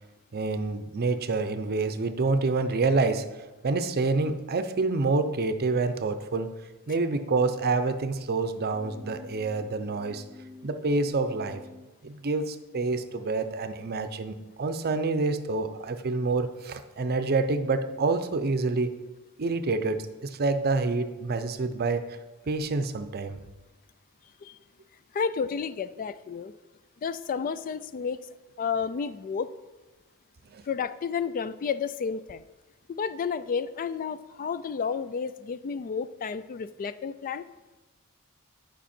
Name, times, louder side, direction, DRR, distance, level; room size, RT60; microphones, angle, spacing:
voice 1, 0.3-3.3 3.6-6.5 6.9-10.2 10.6-11.6 12.0-18.9 19.4-22.0 22.5-23.4 30.5-30.6, right 3 dB, 45° right, 9 dB, 0.6 m, -27 dB
sound 1, 8.6-11.8, left 3 dB, 20° left, 1.6 m, -49 dB
voice 2, 25.1-26.5 27.0-28.2 28.6-29.5 30.7-32.4 32.9-37.4, left 6 dB, 40° left, 13 dB, 0.3 m, -31 dB
10.0 x 5.5 x 4.3 m, 1.1 s
head